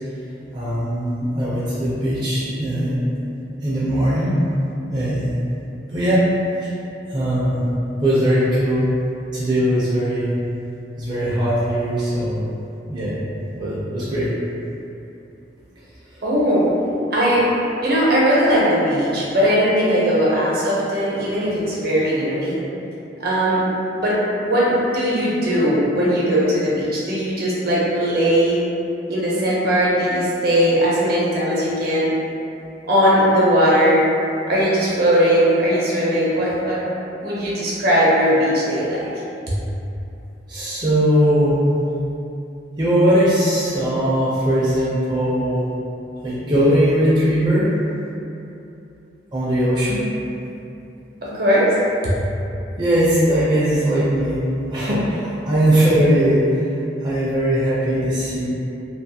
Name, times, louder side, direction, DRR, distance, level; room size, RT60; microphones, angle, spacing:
voice 1, 0.5-3.0 3.6-5.4 5.9-6.2 7.1-7.6 8.0-8.9 9.3-10.3 11.0-12.4 12.9-13.2 13.5-14.3 40.5-41.6 42.8-45.6 46.2-47.7 49.3-50.1 52.8-54.4 54.7-56.4 57.0-58.5, equal, 25° right, -10 dB, 0.4 m, -19 dB
voice 2, 16.2-16.7 17.1-17.5 17.8-22.6 23.2-23.6 24.0-24.2 24.4-28.6 29.1-32.1 32.9-34.0 34.5-36.8 37.2-39.1 39.5-39.6 51.2-51.8, equal, 60° right, -7 dB, 0.7 m, -19 dB
2.4 x 2.3 x 2.7 m, 2.8 s
head